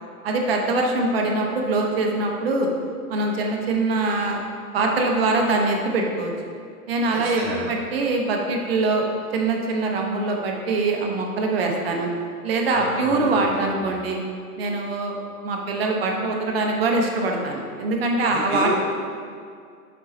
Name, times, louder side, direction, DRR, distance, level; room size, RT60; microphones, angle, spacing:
voice 1, 0.2-2.7 3.1-4.4 4.7-6.3 6.9-9.0 9.3-12.1 12.4-14.2 14.6-18.7, right 3 dB, 40° right, 1 dB, 0.8 m, -23 dB
voice 2, 7.1-7.6 12.7-13.5 13.8-13.9 18.2-18.7, right 1 dB, 20° right, -5 dB, 1.1 m, -30 dB
6.8 x 3.9 x 4.2 m, 2.2 s
hypercardioid pair, 155°, 45 cm